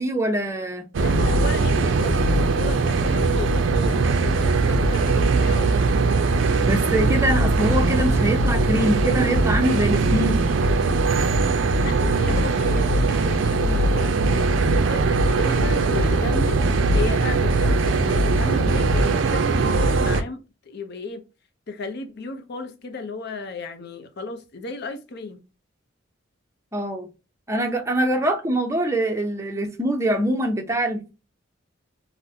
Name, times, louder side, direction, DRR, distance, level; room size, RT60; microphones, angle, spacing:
voice 1, 0.0-0.8 6.6-10.5 26.7-27.1 27.5-31.1, right 1 dB, 15° right, 0.6 m, -24 dB
sound 1, 0.9-20.2, right 3 dB, 60° right, 0.4 m, -20 dB
voice 2, 1.0-5.8 11.7-16.6 16.9-21.2 21.7-25.4 28.2-28.3, left 3 dB, 55° left, 0.6 m, -34 dB
3.8 x 2.1 x 2.6 m
head